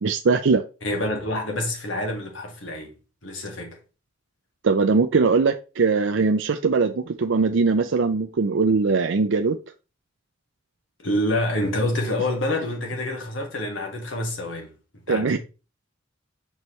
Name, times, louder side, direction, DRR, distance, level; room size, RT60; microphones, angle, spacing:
voice 1, 0.0-0.6 4.6-9.6 15.1-15.4, right 4 dB, 70° right, 0.5 m, -21 dB
voice 2, 0.8-2.9 3.2-3.8 11.0-14.7 15.1-15.4, left 1 dB, 75° left, 2.1 m, -27 dB
6.6 x 4.5 x 3.2 m
head